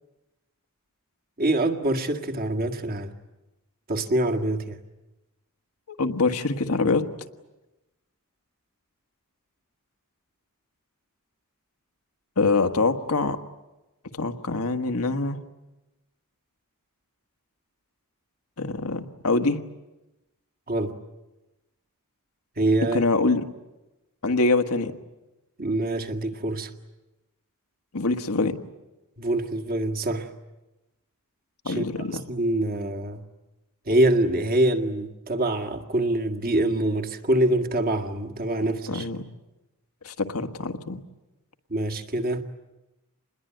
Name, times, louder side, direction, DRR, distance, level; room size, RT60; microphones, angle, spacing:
voice 1, 1.4-3.1 3.9-4.8 20.7-20.9 22.6-23.0 25.6-26.7 29.2-30.3 31.7-31.9 32.3-33.2 33.9-39.1 41.7-42.4, right 1 dB, 40° right, 5 dB, 2.0 m, -25 dB
voice 2, 6.0-7.0 12.4-13.4 14.1-15.4 18.6-19.6 22.9-23.4 24.2-24.9 27.9-28.6 31.6-32.2 38.9-39.2 40.0-41.0, left 3 dB, 75° left, 6 dB, 1.6 m, -24 dB
27.5 x 21.0 x 9.2 m, 1.0 s
head